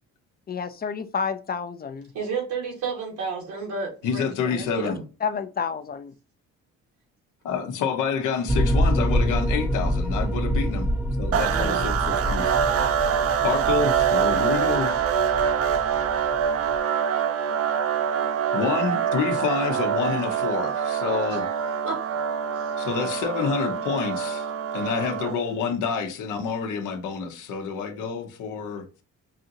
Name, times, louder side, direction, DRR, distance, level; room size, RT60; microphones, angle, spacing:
voice 1, 0.5-2.1 4.8-6.1, left 6 dB, 30° left, 0.4 m, -30 dB
voice 2, 2.1-5.0 11.5-11.9 21.3-21.5 21.8-22.0, right 5 dB, 85° right, 1.8 m, -31 dB
voice 3, 4.0-5.0 7.4-10.9 11.2-12.5 13.4-14.9 18.5-21.5 22.8-24.5 24.7-28.9, left 6 dB, 85° left, 0.9 m, -28 dB
sound 1, 8.5-16.8, equal, 5° right, 0.7 m, -26 dB
sound 2, 11.3-25.5, right 8 dB, 50° right, 0.5 m, -25 dB
5.0 x 2.6 x 2.8 m
cardioid pair, 90°, 30 cm